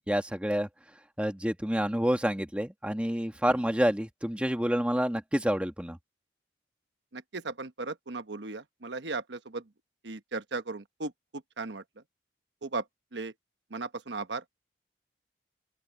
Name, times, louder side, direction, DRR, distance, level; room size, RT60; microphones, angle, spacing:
voice 1, 0.1-0.7 1.2-6.0, equal, 5° right, 1.4 m, -28 dB
voice 2, 7.1-9.6 10.0-11.1 11.6-11.8 12.6-12.8 13.1-13.3 13.7-14.5, right 3 dB, 80° right, 1.2 m, -36 dB
open air
head